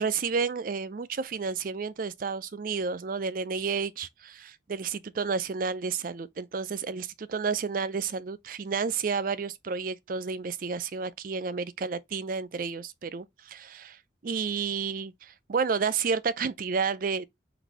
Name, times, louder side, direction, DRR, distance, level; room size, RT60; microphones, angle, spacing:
voice 1, 0.0-17.3, right 5 dB, 45° right, 0.4 m, -31 dB
3.9 x 2.6 x 4.7 m
head